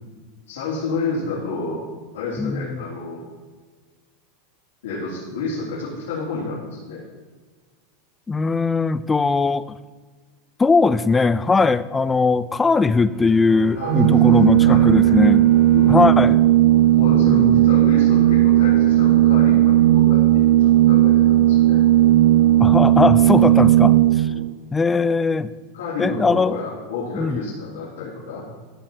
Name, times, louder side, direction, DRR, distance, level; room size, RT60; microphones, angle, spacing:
voice 1, 0.5-1.8 2.1-3.2 4.8-7.0 13.7-15.1 15.7-16.0 17.0-21.8 24.2-24.5 25.7-28.4, left 3 dB, 90° left, -9 dB, 3.5 m, -30 dB
voice 2, 2.4-2.8 8.3-9.8 10.6-15.4 15.9-16.4 17.1-17.6 22.6-24.3 24.7-25.5 26.0-26.6 27.1-27.4, left 4 dB, 15° left, 15 dB, 0.4 m, -19 dB
sound 1, 13.1-17.8, right 2 dB, 30° right, 2.3 m, -40 dB
Organ, 13.8-24.5, right 14 dB, 75° right, 0.5 m, -15 dB
14.5 x 6.8 x 4.4 m, 1.4 s
supercardioid pair, 125°, 0 cm